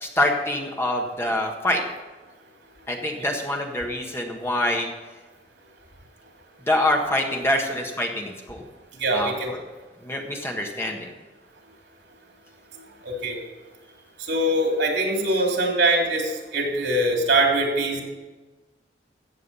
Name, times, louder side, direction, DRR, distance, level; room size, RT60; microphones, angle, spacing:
voice 1, 0.0-1.8 2.9-4.9 6.7-8.6 9.1-9.6 10.0-11.1, left 1 dB, 15° left, 1 dB, 1.5 m, -25 dB
voice 2, 9.0-9.5 13.0-13.4 14.2-18.0, right 1 dB, 90° right, 1 dB, 3.3 m, -22 dB
15.0 x 8.2 x 5.6 m, 1.3 s
head